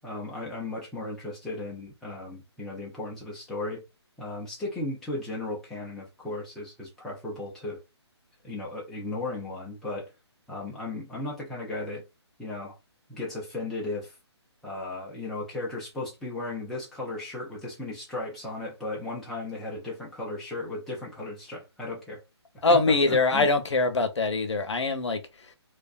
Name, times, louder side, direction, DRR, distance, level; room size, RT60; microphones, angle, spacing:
voice 1, 0.0-3.8 4.2-7.8 8.4-10.1 10.5-12.0 12.4-12.8 13.1-14.1 14.6-22.2 22.7-22.8 23.1-23.5, left 2 dB, ahead, 0.5 m, -35 dB
voice 2, 22.6-25.5, left 3 dB, 80° left, 0.7 m, -23 dB
2.5 x 2.2 x 2.3 m
hypercardioid pair, 150°, 15 cm